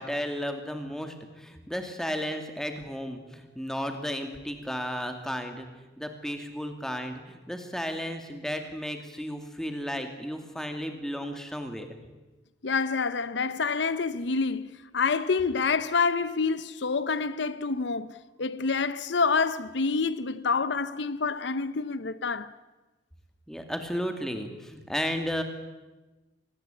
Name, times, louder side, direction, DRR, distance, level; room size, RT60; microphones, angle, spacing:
voice 1, 0.0-5.7 6.0-12.0 23.5-25.4, equal, 5° left, 2.5 m, -34 dB
voice 2, 12.6-22.5, left 4 dB, 70° left, 0.7 m, -27 dB
25.0 x 19.5 x 8.4 m
head